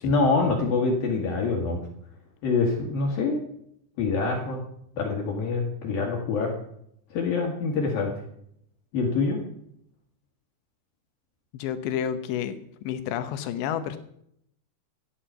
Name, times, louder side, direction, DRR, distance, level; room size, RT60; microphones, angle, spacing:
voice 1, 0.0-1.8 2.4-3.4 4.0-4.6 4.9-6.5 7.1-8.1 8.9-9.4, left 4 dB, 60° left, 0 dB, 3.2 m, -25 dB
voice 2, 11.5-14.0, left 9 dB, 75° left, 11 dB, 3.1 m, -30 dB
14.0 x 9.5 x 5.7 m, 0.72 s
omnidirectional pair, 5.2 m